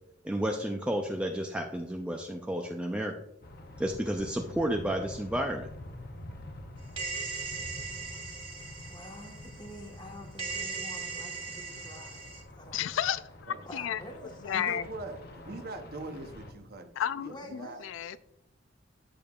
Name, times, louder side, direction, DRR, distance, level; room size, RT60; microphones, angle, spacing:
voice 1, 0.2-3.1 3.8-5.7, right 1 dB, 5° right, 2 dB, 0.4 m, -31 dB
sound 1, 3.4-16.5, left 1 dB, 55° left, 0.8 m, -47 dB
sound 2, 7.0-10.1 10.4-12.4, right 5 dB, 30° right, 1.2 m, -39 dB
voice 2, 8.8-13.0 13.6-14.8 17.3-17.9, left 1 dB, 25° left, 2 dB, 1.2 m, -48 dB
voice 3, 12.7-14.0 14.4-14.9 17.0-18.2, left 9 dB, 75° left, 14 dB, 0.3 m, -32 dB
voice 4, 14.5-17.8, right 2 dB, 50° right, 7 dB, 0.7 m, -42 dB
8.7 x 6.7 x 2.3 m, 0.86 s
head